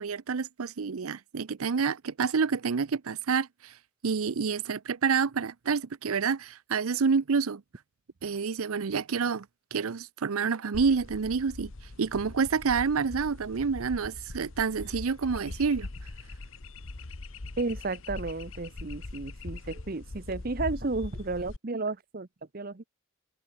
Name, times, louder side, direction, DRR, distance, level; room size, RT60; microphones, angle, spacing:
voice 1, 0.0-3.8 4.0-7.6 8.2-9.5 9.7-11.7 12.0-15.9, right 5 dB, 90° right, 0.6 m, -28 dB
sound 1, 10.7-21.6, left 2 dB, 70° left, 1.3 m, -41 dB
voice 2, 17.6-22.3 22.5-22.9, right 3 dB, 45° right, 0.8 m, -33 dB
head